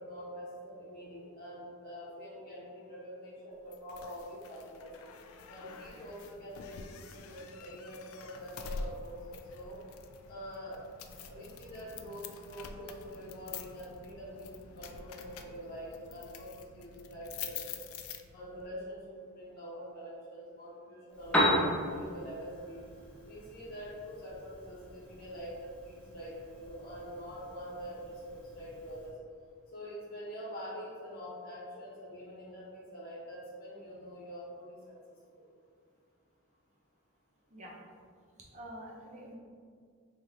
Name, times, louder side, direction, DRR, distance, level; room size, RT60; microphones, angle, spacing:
voice 1, 0.0-4.9 5.5-9.8 10.3-10.8 11.3-17.8 18.3-22.8 23.2-29.2 29.7-34.9 35.4-35.5, equal, 45° left, -6 dB, 1.1 m, -45 dB
sound 1, 3.7-18.7, left 5 dB, 75° left, 0.3 m, -47 dB
Piano, 21.1-29.1, equal, 5° left, 0.6 m, -36 dB
voice 2, 38.5-39.3, equal, 30° right, -3 dB, 0.7 m, -46 dB
3.3 x 2.9 x 3.7 m, 2.1 s
head